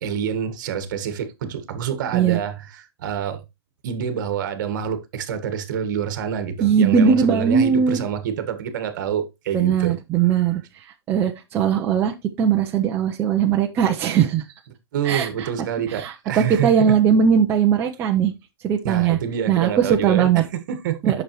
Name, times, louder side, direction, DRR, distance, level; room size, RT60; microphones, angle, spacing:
voice 1, 0.0-3.4 3.8-10.0 14.9-16.9 18.8-21.1, right 8 dB, 45° right, 1.5 m, -27 dB
voice 2, 6.6-8.0 9.5-10.6 11.1-14.4 15.0-15.5 15.9-18.3 18.6-19.2 19.5-20.4 21.0-21.2, right 7 dB, 15° right, 0.6 m, -19 dB
8.6 x 6.2 x 3.0 m
hypercardioid pair, 160°, 13 cm